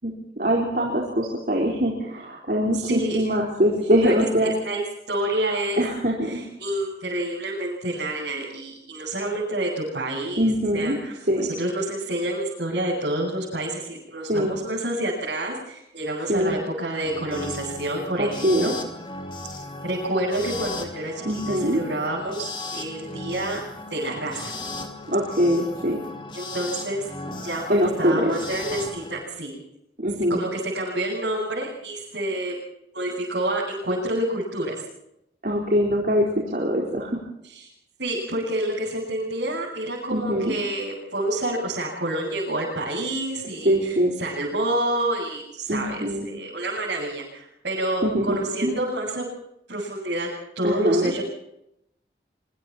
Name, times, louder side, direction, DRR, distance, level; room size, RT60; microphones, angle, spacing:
voice 1, 0.0-4.5 5.8-6.5 10.4-10.9 11.3-11.5 14.3-14.5 16.3-16.6 18.2-18.7 21.2-21.8 25.1-26.0 27.7-28.3 30.0-30.4 35.4-36.3 36.5-37.2 40.1-40.5 43.6-44.1 45.7-46.3 48.0-48.7 50.6-51.1, equal, 50° right, -2 dB, 4.4 m, -23 dB
voice 2, 2.7-3.3 4.0-4.1 4.4-5.8 6.2-18.7 19.8-23.6 23.9-24.5 26.3-27.1 27.4-29.6 30.3-32.5 32.9-34.8 37.4-37.7 38.0-49.3 49.7-50.3 50.5-51.2, right 1 dB, 80° right, -6 dB, 7.8 m, -28 dB
sound 1, 17.0-29.2, left 2 dB, 25° left, 2.5 m, -36 dB
25.0 x 24.5 x 4.4 m, 0.80 s
head